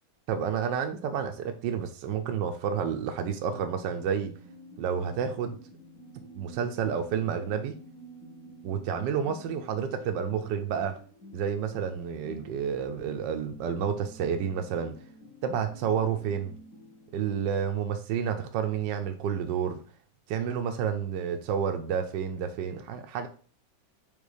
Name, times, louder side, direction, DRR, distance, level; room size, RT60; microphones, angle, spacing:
voice 1, 0.3-4.3 4.8-5.6 6.4-7.7 8.6-11.0 11.3-14.9 15.4-16.5 17.1-19.8 20.3-23.3, right 7 dB, 75° right, 5 dB, 1.2 m, -30 dB
sound 1, 3.2-17.8, equal, 45° left, 1.9 m, -50 dB
5.4 x 3.7 x 4.9 m, 0.41 s
omnidirectional pair, 2.1 m